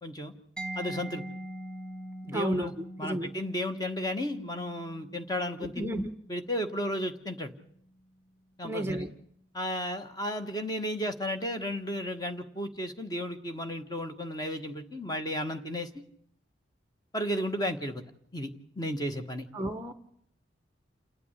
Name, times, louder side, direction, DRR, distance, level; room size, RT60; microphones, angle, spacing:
voice 1, 0.0-0.3 0.7-1.2 2.2-2.7 3.0-6.0 6.3-7.5 8.6-9.1 9.5-15.9 17.1-18.0 18.3-18.5 18.8-19.5, equal, 20° left, 7 dB, 1.3 m, -33 dB
Mallet percussion, 0.6-8.1, right 1 dB, 5° left, 1.1 m, -43 dB
voice 2, 2.3-3.3 5.7-6.1 8.6-9.1 19.5-19.9, right 1 dB, 10° right, 9 dB, 0.8 m, -32 dB
28.5 x 9.5 x 9.8 m, 0.69 s
head